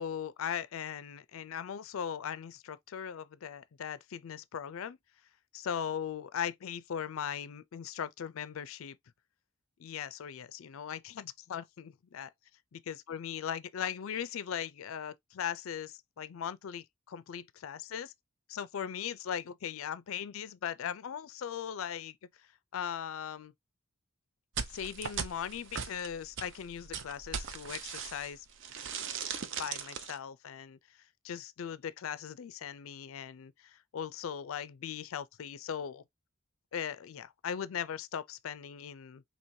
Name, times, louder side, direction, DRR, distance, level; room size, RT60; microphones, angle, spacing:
voice 1, 0.0-5.0 5.5-9.0 9.8-12.3 12.7-18.1 18.5-22.2 22.7-23.5 24.7-28.5 29.4-30.8 31.2-36.0 36.7-39.2, left 8 dB, 75° left, 0.4 m, -39 dB
sound 1, 24.6-28.4 28.6-30.2, right 6 dB, 60° right, 0.6 m, -39 dB
4.6 x 2.8 x 2.7 m
head